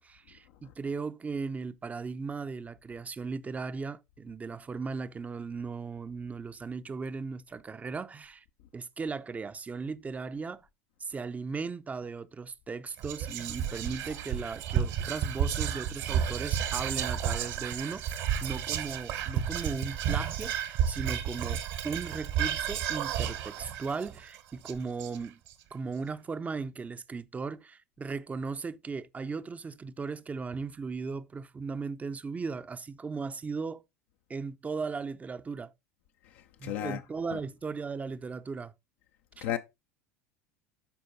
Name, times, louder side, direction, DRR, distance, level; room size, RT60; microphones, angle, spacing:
voice 1, 0.0-8.4 8.7-10.7 11.0-25.4 25.7-33.8 34.3-35.7 36.6-38.7 39.4-39.5, right 4 dB, 20° right, 0.7 m, -37 dB
Whispering, 13.0-25.5, right 9 dB, 55° right, 1.4 m, -32 dB
voice 2, 36.6-37.0 37.3-37.4 39.4-39.6, left 12 dB, 60° left, 0.7 m, -32 dB
11.5 x 4.6 x 4.0 m
figure-of-eight pair, 75°, 8 cm